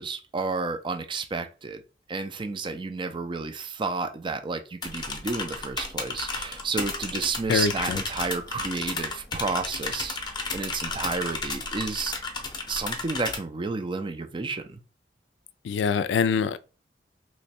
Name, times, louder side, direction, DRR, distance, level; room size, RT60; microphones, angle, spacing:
voice 1, 0.0-1.8 2.1-10.2 10.5-12.1 12.7-14.8, right 4 dB, 30° right, 0.4 m, -31 dB
sound 1, 4.8-13.4, left 3 dB, 25° left, 0.6 m, -33 dB
voice 2, 7.5-8.0 15.6-16.6, left 6 dB, 75° left, 0.3 m, -24 dB
3.0 x 2.2 x 4.1 m
head